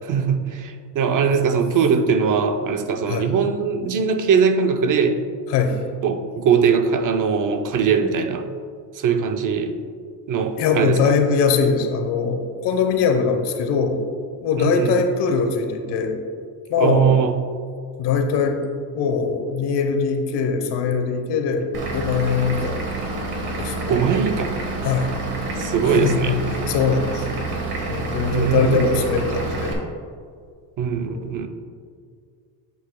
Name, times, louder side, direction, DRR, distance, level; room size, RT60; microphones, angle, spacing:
voice 1, 0.0-5.2 6.0-8.5 8.9-9.8 10.3-11.2 14.6-15.0 16.8-17.4 23.9-24.7 25.6-26.4 28.3-28.9 30.8-31.5, right 6 dB, 50° right, 7 dB, 0.6 m, -21 dB
voice 2, 5.5-5.8 10.6-14.0 14.4-16.2 16.7-17.1 18.0-18.6 18.9-22.8 23.6-24.0 24.8-25.1 25.8-26.4 26.7-27.3 27.9-29.8 31.1-31.3, left 5 dB, 75° left, 5 dB, 1.0 m, -21 dB
Vehicle / Engine, 21.7-29.7, right 2 dB, 65° right, 1.6 m, -28 dB
8.2 x 7.9 x 2.2 m, 2.2 s
cardioid pair, 125°, 41 cm